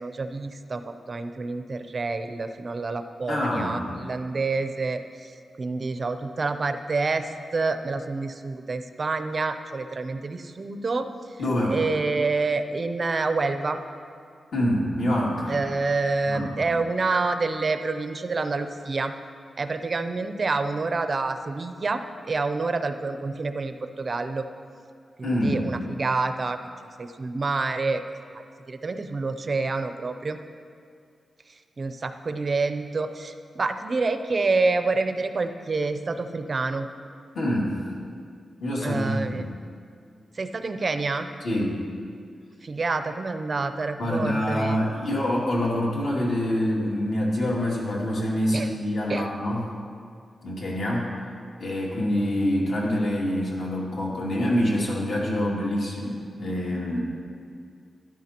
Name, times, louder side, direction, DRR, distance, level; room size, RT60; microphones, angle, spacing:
voice 1, 0.0-5.3 5.6-11.4 11.7-13.8 15.5-19.1 19.6-22.0 22.3-24.5 25.2-26.6 27.0-28.0 28.3-30.4 31.8-36.9 38.8-39.5 40.3-41.3 42.6-44.8 48.5-48.7 49.1-49.3, right 3 dB, 35° right, 8 dB, 0.5 m, -28 dB
voice 2, 3.3-3.8 11.4-11.8 14.5-15.6 16.3-16.8 25.2-25.7 37.3-37.8 38.6-39.4 41.4-41.8 44.0-49.6 50.4-51.1 51.6-57.0, left 1 dB, 65° left, -5 dB, 2.3 m, -26 dB
13.5 x 12.0 x 2.9 m, 2.2 s
wide cardioid pair, 175°, 0 cm